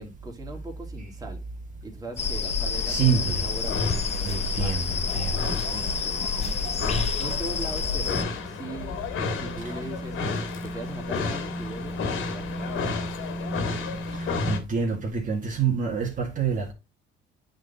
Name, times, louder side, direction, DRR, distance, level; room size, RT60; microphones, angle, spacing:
voice 1, 0.0-1.4 1.8-4.8 5.1-5.2 5.5-8.2 8.4-13.0, right 2 dB, 15° right, 2.2 m, -40 dB
sound 1, 2.2-8.2, left 5 dB, 30° left, 0.8 m, -28 dB
sound 2, 2.7-14.6, left 3 dB, 70° left, 1.9 m, -32 dB
voice 2, 2.9-3.4 4.2-5.4 14.4-16.7, right 6 dB, 40° right, 1.8 m, -26 dB
9.0 x 4.0 x 4.0 m
cardioid pair, 120°, 21 cm